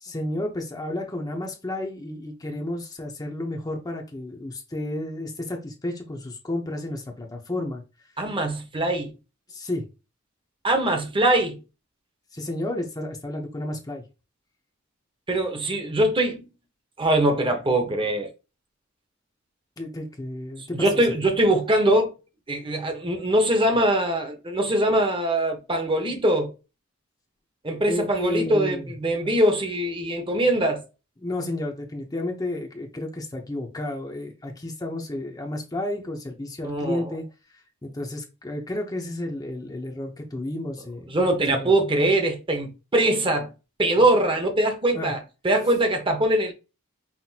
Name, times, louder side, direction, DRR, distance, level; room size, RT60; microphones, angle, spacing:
voice 1, 0.0-7.8 9.5-9.9 12.3-14.0 19.8-21.0 27.9-28.9 29.2-29.3 31.2-37.2 37.5-41.2 41.5-41.7 44.0-44.1 44.9-45.1, left 1 dB, 20° left, 0.7 m, -32 dB
voice 2, 8.2-9.1 10.6-11.6 15.3-16.5 17.0-18.3 20.7-22.1 22.5-26.5 27.6-30.8 36.6-37.1 41.1-43.5 43.8-46.5, right 1 dB, 25° right, 1.0 m, -22 dB
5.8 x 2.6 x 2.8 m
head